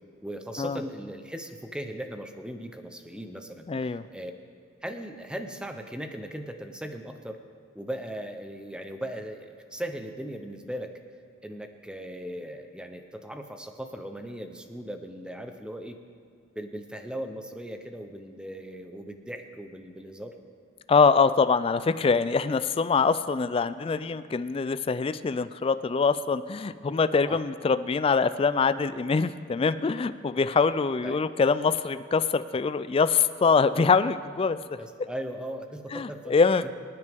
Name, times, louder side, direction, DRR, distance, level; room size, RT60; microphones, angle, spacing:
voice 1, 0.2-4.3 4.8-7.4 7.7-10.9 11.4-16.0 16.6-20.4 27.2-27.4 31.0-31.2 34.8-36.4 36.6-36.7, equal, 5° right, 6 dB, 0.7 m, -38 dB
voice 2, 3.7-4.0 20.9-34.6 35.9-36.6, left 5 dB, 30° left, 13 dB, 0.3 m, -24 dB
24.5 x 9.6 x 3.6 m, 2.1 s
head